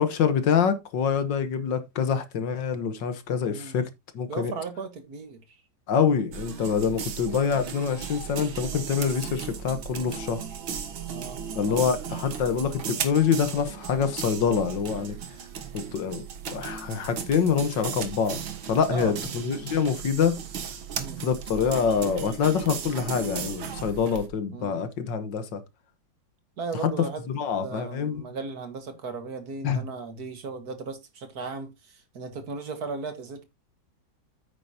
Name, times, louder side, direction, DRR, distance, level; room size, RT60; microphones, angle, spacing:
voice 1, 0.0-4.5 5.9-10.4 11.6-15.2 15.7-18.4 18.7-20.4 21.2-25.6 26.8-26.9 27.3-28.3 29.6-29.8, left 6 dB, 70° left, 1.8 m, -26 dB
voice 2, 3.5-3.8 4.3-5.6 11.1-11.4 11.7-11.8 18.9-19.2 21.0-21.2 24.5-24.9 26.6-27.2 27.6-33.4, right 4 dB, 55° right, 1.8 m, -36 dB
sound 1, 6.3-24.3, right 7 dB, 90° right, 2.2 m, -36 dB
9.1 x 9.1 x 2.8 m
omnidirectional pair, 2.1 m